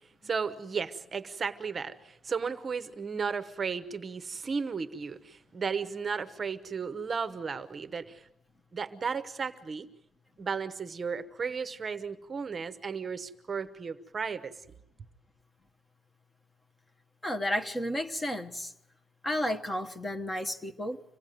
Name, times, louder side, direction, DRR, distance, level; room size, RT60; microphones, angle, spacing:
voice 1, 0.2-8.3 8.7-9.9 10.4-14.5, right 5 dB, 30° right, 0.9 m, -34 dB
voice 2, 17.2-18.7 19.2-21.0, left 1 dB, 15° left, 1.1 m, -32 dB
26.0 x 17.5 x 9.2 m
cardioid pair, 175°, 0 cm